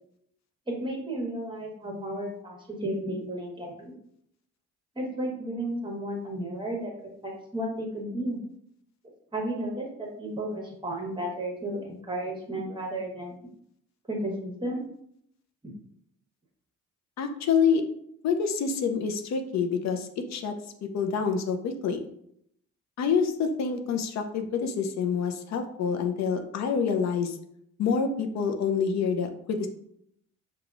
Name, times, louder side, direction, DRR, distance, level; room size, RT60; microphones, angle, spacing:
voice 1, 0.7-3.9 4.9-6.9 7.2-8.4 9.3-13.3 14.1-14.9 15.6-15.7, right 1 dB, 15° right, -1 dB, 1.1 m, -33 dB
voice 2, 17.2-17.8 18.2-20.5 20.8-22.0 23.0-27.4 27.8-29.7, left 6 dB, 65° left, 6 dB, 0.5 m, -27 dB
4.8 x 2.4 x 2.5 m, 0.71 s
cardioid pair, 90°, 30 cm